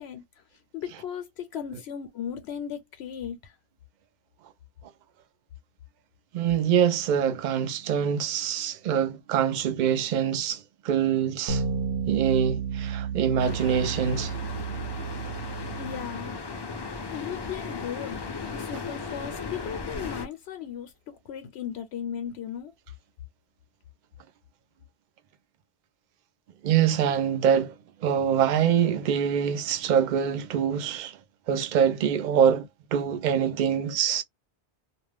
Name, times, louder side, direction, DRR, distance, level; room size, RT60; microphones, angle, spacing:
voice 1, 0.0-3.6 15.8-16.4 17.1-18.2 18.5-22.7, left 8 dB, 80° left, 0.9 m, -37 dB
voice 2, 6.3-11.6 12.1-14.4 26.6-27.7 28.0-31.2 31.5-34.2, right 8 dB, 55° right, 0.6 m, -24 dB
sound 1, 11.5-16.3, right 6 dB, 80° right, 1.0 m, -32 dB
sound 2, 13.4-20.3, left 4 dB, 40° left, 0.3 m, -36 dB
2.5 x 2.1 x 3.2 m
omnidirectional pair, 1.1 m